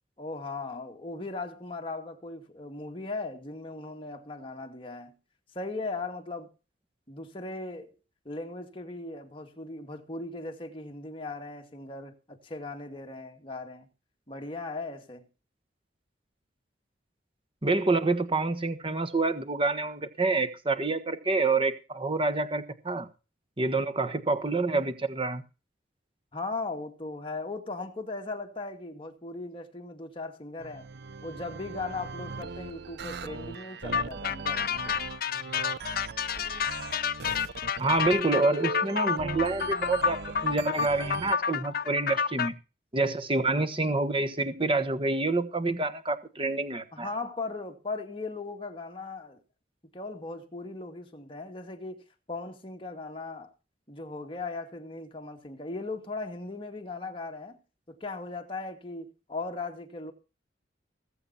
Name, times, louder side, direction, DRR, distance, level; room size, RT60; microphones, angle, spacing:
voice 1, 0.2-5.1 5.5-6.5 7.1-7.9 8.2-13.9 14.3-15.3 26.3-30.9 31.2-35.0 46.9-49.4 49.9-53.5 53.9-57.6 57.9-60.1, left 3 dB, 30° left, 2.3 m, -38 dB
voice 2, 17.6-23.1 23.6-25.4 37.8-42.5 42.9-47.1, right 3 dB, 30° right, 1.4 m, -27 dB
sound 1, 30.6-41.4, right 4 dB, 65° right, 0.7 m, -39 dB
sound 2, 33.9-42.5, left 7 dB, 55° left, 0.6 m, -30 dB
20.0 x 8.1 x 4.2 m
head